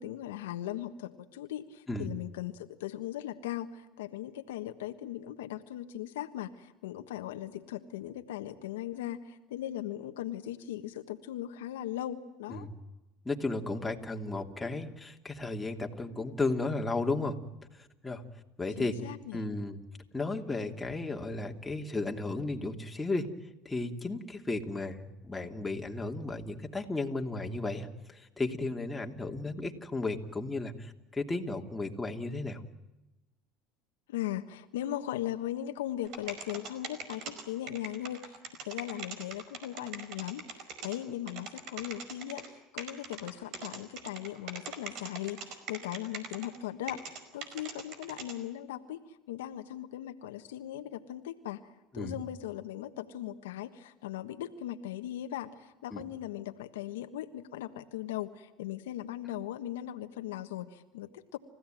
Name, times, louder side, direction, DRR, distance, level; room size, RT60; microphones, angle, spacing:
voice 1, 0.0-12.7 18.8-19.4 34.1-49.0 49.3-51.6 51.9-61.4, left 12 dB, 90° left, 7 dB, 1.3 m, -39 dB
voice 2, 13.2-17.4 18.0-18.2 18.6-19.0 19.3-19.8 20.1-23.3 23.6-32.6 51.9-52.2 55.9-56.0, left 2 dB, 15° left, 2 dB, 2.8 m, -34 dB
sound 1, 36.0-41.0 41.3-42.5 42.8-46.6 46.9-48.3, right 5 dB, 60° right, 4.9 m, -41 dB
29.5 x 16.0 x 9.2 m, 1.0 s
supercardioid pair, 95°, 0 cm